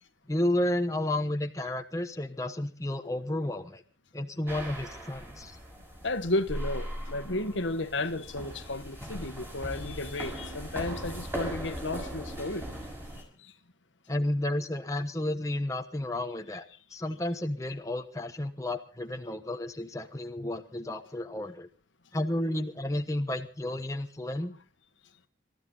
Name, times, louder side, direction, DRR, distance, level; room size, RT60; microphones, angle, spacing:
voice 1, 0.3-3.8 4.1-5.6 14.1-16.7 16.9-21.7 22.1-24.5, left 1 dB, 15° left, 1.1 m, -32 dB
sound 1, 4.5-13.2, equal, 10° right, 5.8 m, -39 dB
voice 2, 6.0-12.7 13.1-13.5, left 2 dB, 85° left, 1.5 m, -33 dB
26.5 x 13.5 x 4.0 m
head